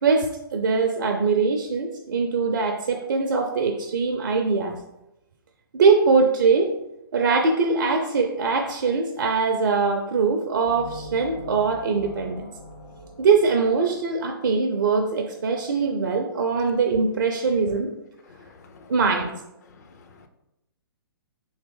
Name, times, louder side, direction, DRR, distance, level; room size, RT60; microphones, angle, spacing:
voice 1, 0.0-4.8 5.7-6.7 7.1-12.5 13.2-17.9 18.9-19.3, right 4 dB, 55° right, 3 dB, 0.4 m, -22 dB
sound 1, 10.7-14.4, equal, 65° left, 1.3 m, -42 dB
voice 2, 18.2-19.0 19.6-20.3, left 4 dB, 45° left, 6 dB, 0.5 m, -50 dB
3.5 x 3.0 x 3.4 m, 0.88 s
figure-of-eight pair, 120°, 13 cm